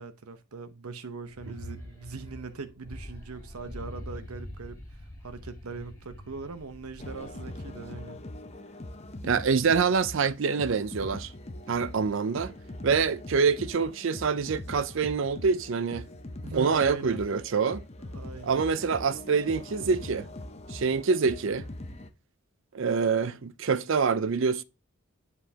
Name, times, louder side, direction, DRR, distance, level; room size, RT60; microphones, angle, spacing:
voice 1, 0.0-4.8 5.2-8.2 16.4-17.2 18.1-18.6, right 4 dB, 85° right, 0.9 m, -40 dB
sound 1, 1.2-7.5, equal, 15° left, 3.0 m, -44 dB
sound 2, 7.0-22.1, left 1 dB, 30° left, 0.6 m, -42 dB
voice 2, 9.2-11.3 11.7-12.5 12.8-16.1 16.5-17.8 18.4-20.3 20.7-21.7 22.7-24.6, right 5 dB, 60° right, 0.5 m, -26 dB
10.0 x 4.7 x 2.8 m
head